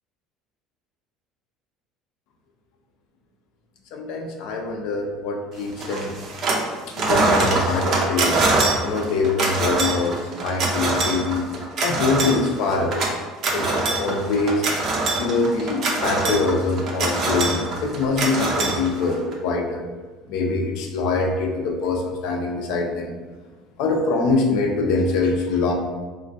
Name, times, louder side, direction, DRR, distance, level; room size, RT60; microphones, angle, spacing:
voice 1, 3.9-6.1 6.9-8.3 8.8-11.5 11.8-13.1 13.5-13.7 14.0-14.6 15.2-19.8 20.3-23.1 23.8-25.7, left 3 dB, 70° left, 2 dB, 0.4 m, -23 dB
sound 1, 5.8-6.7 6.9-19.3, right 2 dB, 45° right, 0.5 m, -23 dB
3.2 x 2.2 x 2.6 m, 1.3 s
cardioid pair, 145°, 0 cm